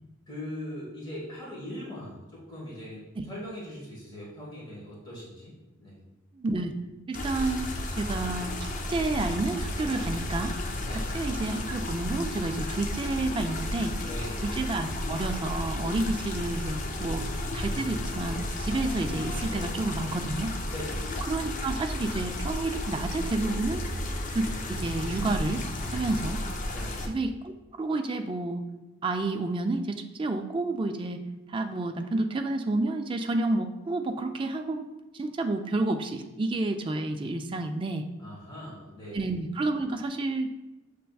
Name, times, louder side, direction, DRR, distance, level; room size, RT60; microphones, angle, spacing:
voice 1, 0.3-6.0 9.8-10.1 10.8-11.1 14.0-14.5 20.7-21.2 26.7-27.1 38.2-39.2, left 1 dB, 20° left, -6 dB, 1.1 m, -41 dB
voice 2, 6.4-6.7 7.1-7.7 8.0-10.5 11.1-14.0 14.4-17.3 17.5-20.5 21.3-23.8 24.3-25.6 25.9-26.4 27.1-28.6 29.0-31.2 31.5-34.9 35.1-38.0 39.1-40.5, right 2 dB, 25° right, 6 dB, 0.3 m, -30 dB
sound 1, 7.1-27.1, left 1 dB, 40° left, 0.4 m, -33 dB
6.6 x 3.3 x 2.3 m, 1.0 s
head